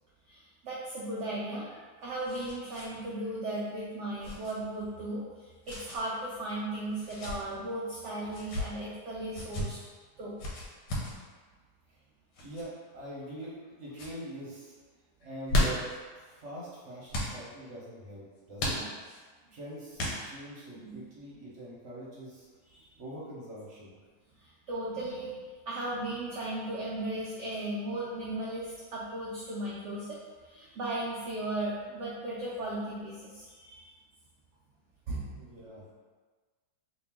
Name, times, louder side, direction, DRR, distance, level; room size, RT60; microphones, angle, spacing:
voice 1, 0.3-1.7 2.0-9.8 10.2-10.3 11.0-11.2 18.6-18.9 20.8-21.0 22.7-22.9 24.4-25.4 25.7-33.9 35.1-35.4, right 1 dB, 75° right, -5 dB, 0.6 m, -36 dB
sound 1, 1.5-2.9 3.2-3.3 4.2-4.5 5.6-6.0 6.9-7.4 8.3-8.7 9.3-9.7 10.4-11.2 12.3-12.6 13.3-13.7 13.9-14.1 15.2-16.0 17.1-17.4 18.6-19.2 20.0-20.5, left 1 dB, 90° left, 1.4 m, -33 dB
voice 2, 12.4-14.8 15.2-18.7 19.5-22.5 23.0-23.9 35.3-35.8, right 1 dB, 50° right, -6 dB, 1.1 m, -44 dB
3.0 x 2.7 x 3.5 m, 1.4 s
omnidirectional pair, 1.8 m